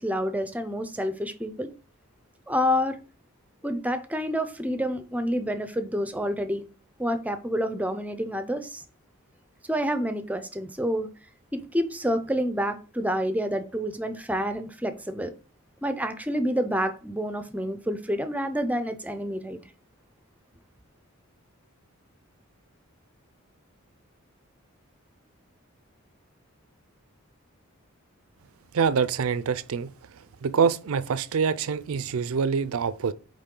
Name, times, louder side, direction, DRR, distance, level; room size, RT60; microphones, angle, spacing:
voice 1, 0.0-1.7 2.5-3.0 3.6-6.6 7.0-8.8 9.7-11.1 11.5-15.3 15.8-19.6, equal, 5° right, 0.4 m, -28 dB
voice 2, 28.7-29.9 30.4-33.1, right 6 dB, 75° right, 0.4 m, -25 dB
8.3 x 3.1 x 3.7 m
head